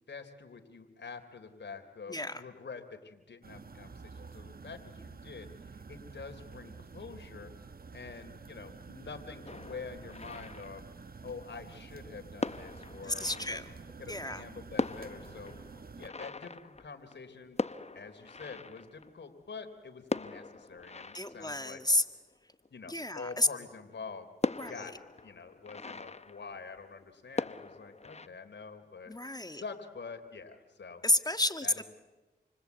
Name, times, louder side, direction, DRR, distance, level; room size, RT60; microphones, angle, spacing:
voice 1, 0.1-7.5 7.9-10.8 11.2-13.6 14.0-15.5 16.0-17.6 17.9-21.8 22.7-24.3 24.7-29.1 29.5-31.0 31.6-31.7, left 5 dB, 75° left, 6 dB, 3.5 m, -46 dB
voice 2, 2.1-2.4 13.0-13.7 14.1-14.4 21.1-22.0 22.9-23.5 24.6-24.9 29.1-29.6 31.0-31.8, left 1 dB, 20° left, 8 dB, 1.8 m, -31 dB
sound 1, 3.4-16.1, right 4 dB, 55° right, 1.1 m, -49 dB
sound 2, 9.4-11.3 12.0-12.1 12.4-14.1 14.5-14.6 14.7-19.5 20.0-22.7 23.2-23.3 23.7-23.8 24.4-27.0 27.3-28.3, left 3 dB, 35° left, 0.9 m, -40 dB
29.0 x 24.5 x 8.3 m, 1.2 s
cardioid pair, 45°, 18 cm